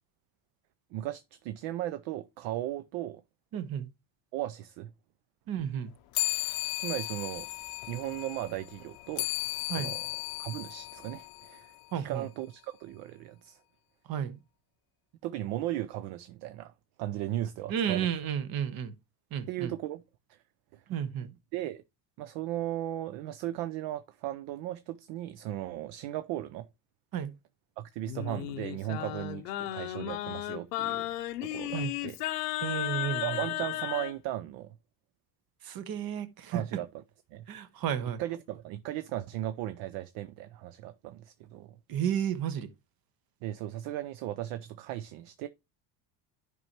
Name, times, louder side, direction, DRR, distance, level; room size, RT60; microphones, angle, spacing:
voice 1, 0.9-3.2 4.3-4.9 6.4-6.5 6.8-7.5 7.9-9.3 9.7-10.1 10.4-13.6 15.2-16.7 17.0-18.1 19.5-20.0 20.3-20.4 20.7-20.8 21.5-21.8 22.2-26.7 27.8-31.1 31.4-32.2 33.2-34.7 36.5-36.9 37.3-37.5 38.2-41.8 43.4-45.5, right 13 dB, 65° right, 0.6 m, -36 dB
voice 2, 3.5-3.9 5.5-5.9 9.7-9.9 11.9-12.2 14.1-14.4 17.7-18.9 19.3-19.7 20.9-21.3 27.1-27.3 31.7-31.9 32.6-33.4 35.6-36.8 37.5-38.2 41.9-42.7, right 9 dB, 50° right, 1.0 m, -32 dB
sound 1, 6.1-12.0, left 19 dB, 55° left, 0.6 m, -36 dB
Singing, 28.1-34.1, left 15 dB, 90° left, 0.7 m, -34 dB
11.0 x 4.7 x 2.9 m
supercardioid pair, 85°, 46 cm